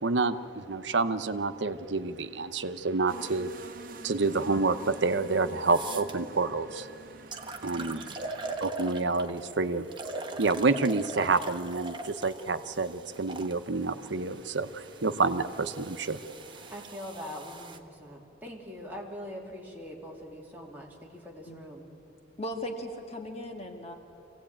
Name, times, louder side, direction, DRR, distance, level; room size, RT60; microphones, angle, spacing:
voice 1, 0.0-6.9 7.6-8.1 8.6-16.3 16.6-16.7, right 3 dB, 75° right, 10 dB, 0.9 m, -29 dB
sound 1, 3.1-8.6, right 2 dB, 50° right, 1.1 m, -48 dB
sound 2, 5.1-5.2 5.6-6.1 6.8-6.9 7.3-9.4 9.9-13.5 14.4-17.8, right 3 dB, 25° right, 1.1 m, -41 dB
voice 2, 16.7-21.9, equal, 10° right, -2 dB, 2.8 m, -43 dB
voice 3, 22.4-23.9, equal, 35° left, 3 dB, 1.8 m, -37 dB
25.0 x 17.0 x 8.8 m, 2.8 s
head